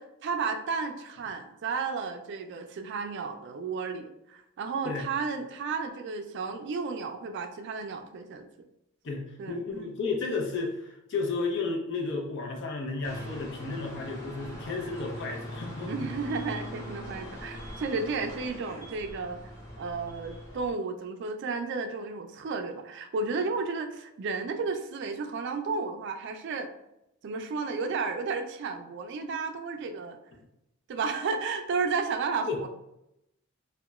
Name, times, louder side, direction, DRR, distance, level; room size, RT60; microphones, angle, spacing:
voice 1, 0.0-8.5 9.4-9.9 15.9-19.4 19.8-26.7 27.2-30.2 30.9-32.7, right 4 dB, 55° right, 7 dB, 0.3 m, -33 dB
voice 2, 9.0-16.1 32.5-32.6, left 3 dB, 60° left, 0 dB, 0.6 m, -33 dB
sound 1, 13.0-20.7, equal, 15° left, 1.3 m, -41 dB
2.8 x 2.1 x 2.3 m, 0.85 s
head